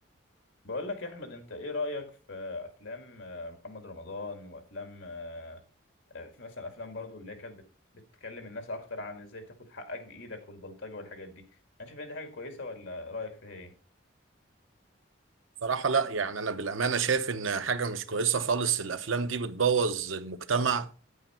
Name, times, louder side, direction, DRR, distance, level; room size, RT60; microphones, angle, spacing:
voice 1, 0.6-5.6 6.1-7.6 7.9-11.5 11.8-13.7, left 2 dB, 80° left, 2.0 m, -40 dB
voice 2, 15.6-20.9, right 5 dB, 90° right, 0.8 m, -28 dB
9.1 x 8.5 x 4.3 m
head